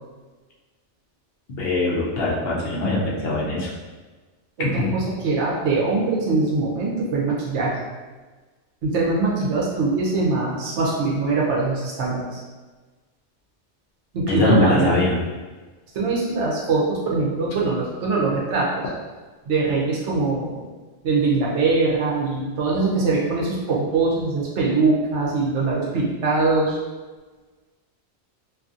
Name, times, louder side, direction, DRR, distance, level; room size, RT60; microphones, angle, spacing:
voice 1, 1.5-3.7 4.6-4.9 14.3-15.2, left 2 dB, 65° left, -4 dB, 0.8 m, -22 dB
voice 2, 4.6-7.7 8.8-12.4 14.1-15.1 15.9-18.8 19.5-20.6 21.0-26.8, right 3 dB, 85° right, -4 dB, 1.0 m, -22 dB
2.7 x 2.6 x 2.4 m, 1.3 s
omnidirectional pair, 1.2 m